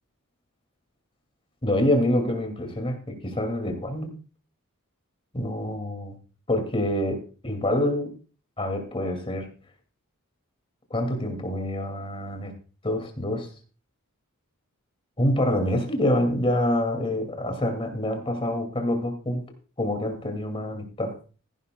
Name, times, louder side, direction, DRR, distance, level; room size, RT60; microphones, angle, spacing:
voice 1, 1.6-4.1 5.3-6.2 6.5-8.1 8.6-9.5 10.9-12.5 12.8-13.5 15.2-19.4 19.8-21.2, left 1 dB, 25° left, 5 dB, 2.3 m, -26 dB
14.5 x 11.5 x 2.3 m, 0.36 s
head